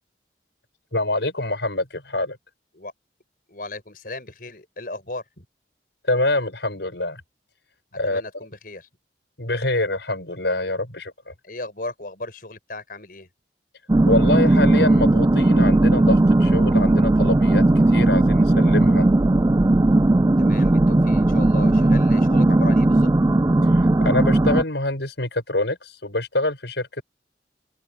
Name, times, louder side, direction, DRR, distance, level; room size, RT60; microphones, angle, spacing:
voice 1, 0.9-2.4 6.1-7.2 8.0-8.2 9.4-11.3 14.1-17.6 17.9-19.1 23.7-27.0, left 2 dB, 75° left, 5.7 m, -25 dB
voice 2, 3.5-5.5 8.0-8.9 11.4-13.3 20.4-23.1, left 2 dB, 50° left, 6.2 m, -36 dB
sound 1, 13.9-24.6, right 2 dB, 20° right, 0.4 m, -17 dB
open air
head